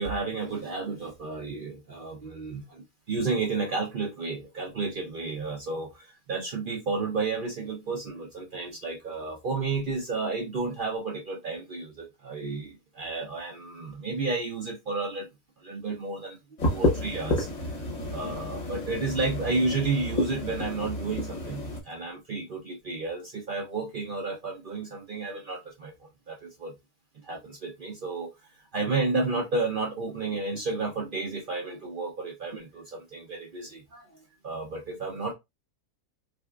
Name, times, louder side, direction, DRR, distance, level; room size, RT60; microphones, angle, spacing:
voice 1, 0.0-15.3 15.6-16.4 16.6-17.5 18.1-26.7 27.2-28.3 28.7-34.1 34.4-35.3, right 3 dB, 60° right, 0.5 m, -32 dB
sound 1, 16.6-21.8, left 1 dB, 35° left, 0.8 m, -30 dB
3.5 x 2.7 x 2.3 m
omnidirectional pair, 1.6 m